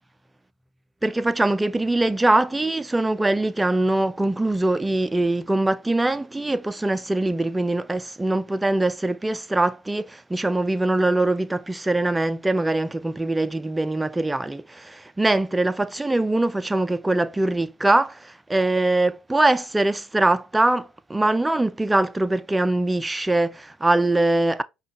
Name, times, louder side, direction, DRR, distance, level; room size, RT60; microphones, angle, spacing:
voice 1, 1.0-24.6, right 2 dB, 10° right, 0.4 m, -22 dB
5.5 x 2.3 x 3.7 m
supercardioid pair, 80°, 0 cm